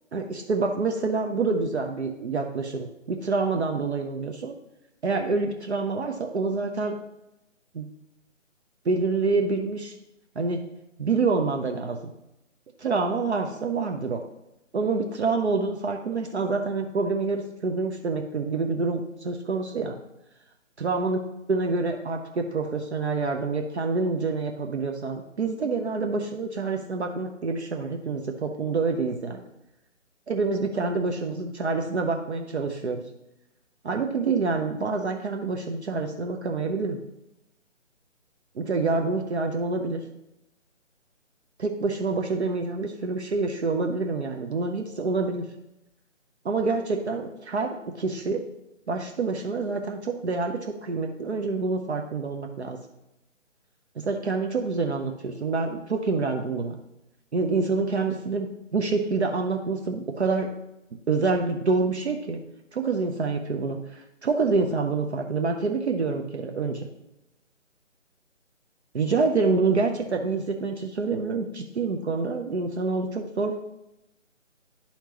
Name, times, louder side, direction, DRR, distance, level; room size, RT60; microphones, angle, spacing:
voice 1, 0.1-4.5 5.0-7.0 7.7-7.9 8.8-10.0 10.4-10.6 11.0-12.0 12.8-14.2 14.7-20.0 20.8-21.2 21.5-29.4 30.3-33.0 33.8-37.0 38.5-40.0 41.6-45.5 46.4-48.4 48.9-52.8 54.0-56.7 57.3-60.5 61.1-62.4 62.7-66.9 68.9-73.6, right 4 dB, 60° right, 3 dB, 0.7 m, -27 dB
10.5 x 4.4 x 2.9 m, 0.88 s
figure-of-eight pair, 150°, 38 cm